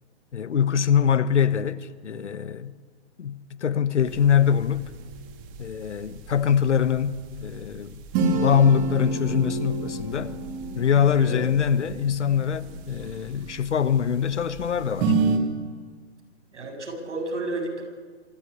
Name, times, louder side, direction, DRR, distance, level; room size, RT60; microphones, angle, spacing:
voice 1, 0.3-2.8 3.2-4.9 5.6-8.0 8.3-10.3 10.7-15.1, left 8 dB, 80° left, 1.3 m, -23 dB
sound 1, 4.1-15.4, right 3 dB, 25° right, 2.2 m, -30 dB
voice 2, 16.5-17.8, right 2 dB, 90° right, 7.6 m, -31 dB
25.5 x 12.5 x 9.9 m
hypercardioid pair, 150°, 35 cm